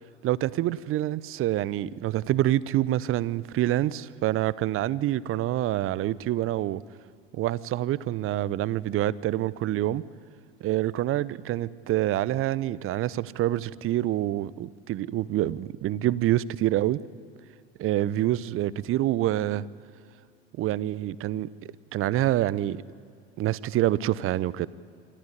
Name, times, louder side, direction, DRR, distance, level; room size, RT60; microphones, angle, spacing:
voice 1, 0.2-6.8 7.3-10.0 10.6-17.0 17.8-19.6 20.6-21.5 21.9-22.8 23.4-24.7, right 14 dB, 40° right, 0.7 m, -26 dB
26.5 x 13.5 x 9.9 m
hypercardioid pair, 75°, 33 cm